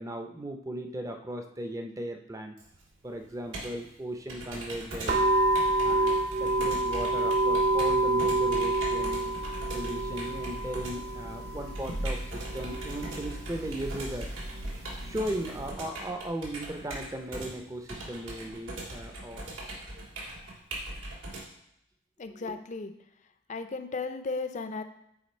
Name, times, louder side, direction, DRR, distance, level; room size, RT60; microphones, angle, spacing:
voice 1, 0.0-2.5 3.0-5.3 5.8-9.3 9.7-14.3 15.0-19.5 22.4-22.6, right 1 dB, 15° right, 5 dB, 0.5 m, -37 dB
Computer keyboard, 2.6-21.4, right 1 dB, 85° right, 1.9 m, -41 dB
sound 1, 5.1-15.7, right 2 dB, 55° right, 1.0 m, -29 dB
voice 2, 22.2-22.9 23.5-24.8, left 4 dB, 40° left, 8 dB, 0.5 m, -35 dB
8.5 x 3.3 x 4.3 m, 0.78 s
head